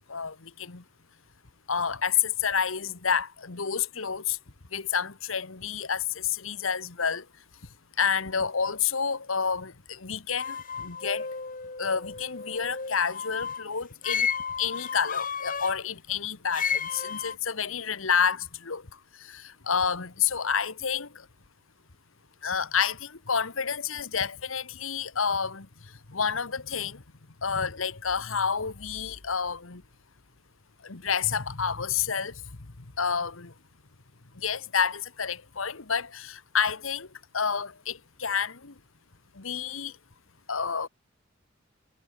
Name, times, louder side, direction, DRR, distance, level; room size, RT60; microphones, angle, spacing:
voice 1, 0.1-0.8 1.7-4.4 4.7-7.2 8.0-11.3 11.8-14.3 14.6-18.8 19.2-21.1 22.4-25.7 26.1-27.0 27.4-29.8 30.8-32.3 33.0-33.5 34.4-37.1 37.3-38.7 39.4-39.9 40.5-40.9, left 6 dB, 75° left, 1.4 m, -29 dB
sound 1, 10.4-13.7 14.0-15.8 16.5-17.4, left 6 dB, 40° left, 2.9 m, -33 dB
head